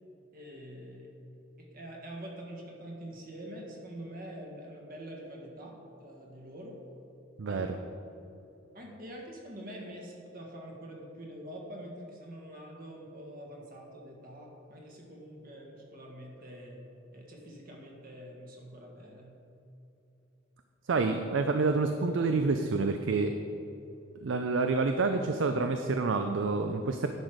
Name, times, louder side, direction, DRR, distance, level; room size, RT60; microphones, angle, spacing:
voice 1, 0.3-1.1 1.6-6.8 7.5-7.7 8.7-16.8 17.1-19.3, right 1 dB, 50° right, -1 dB, 1.7 m, -45 dB
voice 2, 7.4-7.7 20.9-23.3 24.2-27.1, right 3 dB, 75° right, 6 dB, 0.5 m, -28 dB
10.5 x 6.3 x 5.0 m, 2.9 s
head